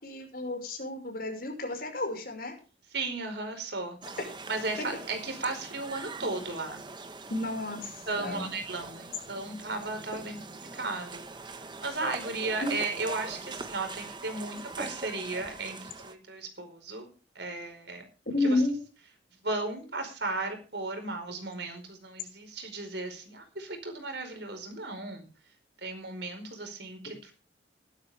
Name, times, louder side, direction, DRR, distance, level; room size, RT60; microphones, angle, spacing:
voice 1, 0.0-2.5 4.8-4.9 7.3-8.6 12.6-12.7 18.3-18.8, left 2 dB, 50° left, 4 dB, 5.6 m, -31 dB
voice 2, 2.9-4.0 4.5-6.8 8.1-17.1 17.3-18.0 18.5-18.6 19.4-25.2 25.8-27.3, right 3 dB, 60° right, 6 dB, 4.8 m, -35 dB
sound 1, 4.0-16.1, right 3 dB, 25° right, 1.5 m, -42 dB
17.5 x 12.0 x 3.6 m, 0.36 s
head